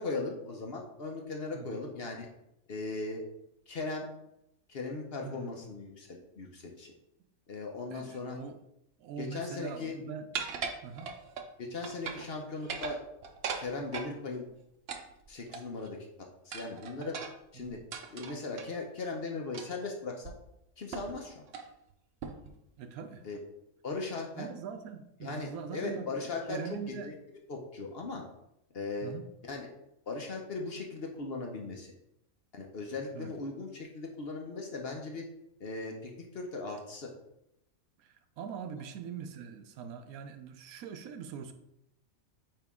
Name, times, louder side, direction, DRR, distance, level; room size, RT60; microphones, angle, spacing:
voice 1, 0.0-2.3 2.7-3.2 3.7-4.1 4.7-6.9 7.5-8.4 9.2-10.0 11.6-13.0 13.6-14.4 15.3-16.0 16.4-17.2 17.5-17.8 18.1-20.3 20.8-21.4 23.2-23.4 23.8-24.5 25.2-26.6 27.0-27.1 27.5-28.2 28.7-29.1 29.4-29.7 30.1-31.9 32.5-35.3 35.6-37.1, left 3 dB, 50° left, 1 dB, 0.9 m, -38 dB
voice 2, 5.2-5.5 7.9-8.6 9.0-10.3 10.8-11.1 17.5-17.8 22.8-23.2 24.3-27.1 29.0-29.3 33.1-33.3 38.0-41.5, right 6 dB, 80° right, 9 dB, 1.1 m, -42 dB
sound 1, 10.3-11.5 11.8-12.3 12.6-14.1 14.9-15.9 16.5-18.7 19.5-19.8 20.2-20.3 20.9-21.2 21.5-21.7 22.2-22.5, right 5 dB, 60° right, 0.7 m, -39 dB
8.8 x 3.0 x 3.5 m, 0.82 s
omnidirectional pair, 1.5 m